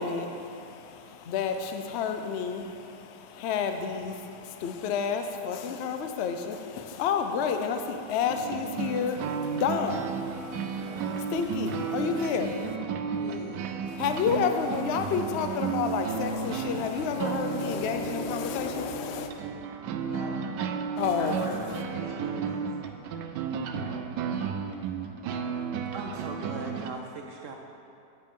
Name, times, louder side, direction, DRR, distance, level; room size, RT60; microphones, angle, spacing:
voice 1, 0.0-12.8 13.9-19.3 21.0-21.3, left 6 dB, 65° left, 6 dB, 0.6 m, -30 dB
sound 1, 8.3-26.9, right 6 dB, 85° right, 1.2 m, -33 dB
voice 2, 13.1-13.9 20.0-20.5 21.0-23.0 23.7-24.1, left 2 dB, 85° left, -1 dB, 2.0 m, -42 dB
voice 3, 25.9-27.5, right 3 dB, 65° right, 2 dB, 0.8 m, -39 dB
9.6 x 9.1 x 3.7 m, 2.5 s
omnidirectional pair, 1.8 m